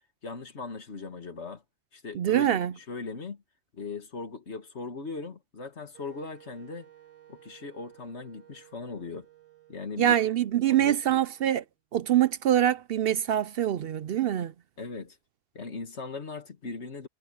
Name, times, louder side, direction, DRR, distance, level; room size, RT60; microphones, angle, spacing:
voice 1, 0.2-1.6 1.9-3.4 3.7-6.9 7.3-9.3 9.7-10.2 10.7-11.2 14.8-15.2 15.5-17.1, left 4 dB, 60° left, 2.2 m, -39 dB
voice 2, 2.1-2.7 10.0-11.6 11.9-14.5, right 11 dB, 60° right, 0.6 m, -24 dB
Wind instrument woodwind instrument, 5.9-11.8, right 13 dB, 85° right, 3.4 m, -57 dB
omnidirectional pair, 1.3 m